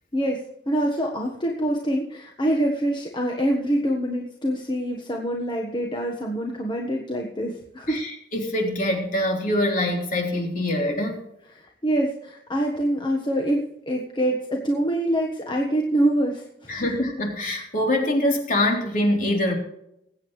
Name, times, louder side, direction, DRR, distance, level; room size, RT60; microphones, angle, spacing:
voice 1, 0.1-8.0 11.4-16.8, right 1 dB, 25° left, 0 dB, 1.4 m, -25 dB
voice 2, 7.9-11.2 16.7-19.5, left 1 dB, 50° left, 0 dB, 3.5 m, -24 dB
21.0 x 8.9 x 3.3 m, 0.79 s
head